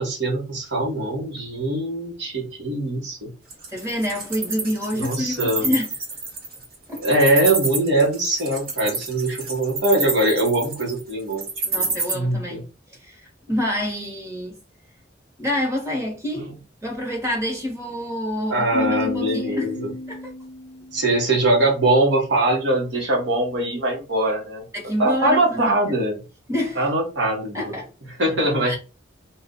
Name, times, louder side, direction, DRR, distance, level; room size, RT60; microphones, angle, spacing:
voice 1, 0.0-3.3 4.9-5.7 7.0-11.4 11.7-11.9 12.1-12.6 16.4-16.5 18.5-19.9 20.9-24.6 25.0-26.2 26.8-27.7 28.2-28.8, right 1 dB, 75° right, 1.2 m, -22 dB
Wild animals, 3.5-12.1, right 3 dB, 55° right, 1.2 m, -27 dB
voice 2, 3.7-5.9 6.9-7.0 11.6-12.6 13.0-13.2 13.5-14.6 15.4-16.5 16.8-19.7 20.1-20.3 24.7-26.0 26.5-26.8 27.5-27.9 28.7-28.8, left 1 dB, 15° right, 1.1 m, -27 dB
sound 1, 18.7-21.2, left 2 dB, 60° left, 0.5 m, -30 dB
2.8 x 2.4 x 3.7 m
head